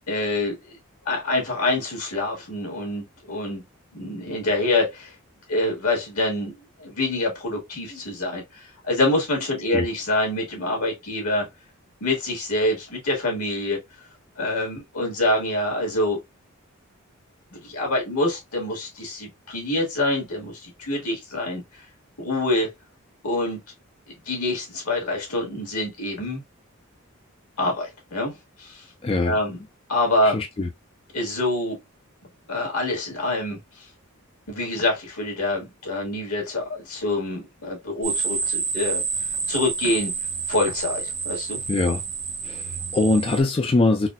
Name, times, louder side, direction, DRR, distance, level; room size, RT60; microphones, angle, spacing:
voice 1, 0.1-0.8 1.0-3.6 3.9-5.1 5.5-6.5 6.8-11.5 12.0-13.8 14.4-16.2 17.5-21.8 22.2-22.7 23.2-23.6 24.1-26.4 27.6-28.3 28.6-28.8 29.2-29.6 29.9-30.4 31.1-31.8 32.5-33.9 34.5-39.0 39.5-40.1 40.5-41.6, left 2 dB, 90° left, 1.7 m, -26 dB
voice 2, 29.0-29.4 30.2-30.7 41.7-42.0 42.4-44.1, left 2 dB, 25° left, 0.3 m, -22 dB
sound 1, 38.0-43.4, right 5 dB, 55° right, 0.8 m, -29 dB
4.0 x 2.2 x 2.3 m
head